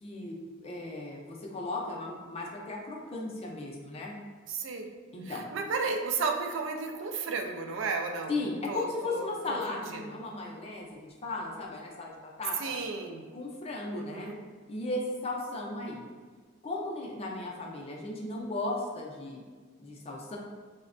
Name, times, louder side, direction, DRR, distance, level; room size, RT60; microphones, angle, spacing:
voice 1, 0.0-4.1 5.1-5.4 8.3-12.8 13.3-14.3 14.7-16.0 16.6-19.4 19.8-20.4, left 2 dB, 30° left, -1 dB, 0.4 m, -36 dB
voice 2, 4.5-4.9 5.3-8.3 8.7-10.2 12.6-13.2 13.9-14.4, right 4 dB, 70° right, 4 dB, 0.3 m, -34 dB
4.2 x 2.1 x 2.5 m, 1.5 s
head